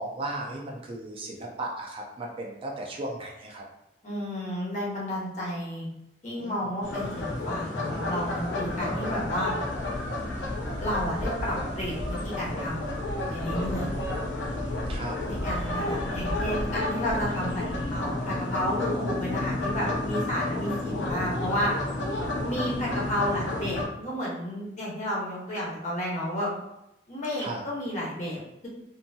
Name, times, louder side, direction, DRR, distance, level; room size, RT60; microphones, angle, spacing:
voice 1, 0.0-3.6 6.4-6.7 13.6-15.2 22.3-22.8 27.4-27.6, right 2 dB, 30° right, -2 dB, 0.4 m, -37 dB
voice 2, 4.0-5.9 6.2-9.5 10.8-12.9 13.3-14.0 15.2-21.7 22.4-26.5 27.1-28.7, equal, 45° left, -5 dB, 0.9 m, -31 dB
sound 1, 6.8-23.8, left 2 dB, 90° left, 0.6 m, -31 dB
2.7 x 2.6 x 2.2 m, 0.86 s
head